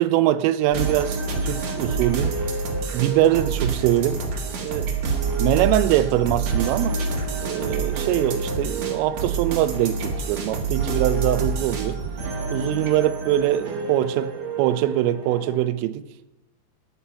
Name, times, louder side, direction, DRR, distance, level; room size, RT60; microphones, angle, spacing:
voice 1, 0.0-2.3 2.9-4.2 4.6-4.9 5.4-7.0 7.4-12.0 12.5-16.0, right 13 dB, 85° right, 3.3 m, -23 dB
sound 1, 0.7-15.6, right 4 dB, 60° right, 1.8 m, -27 dB
14.0 x 10.0 x 5.5 m
omnidirectional pair, 5.8 m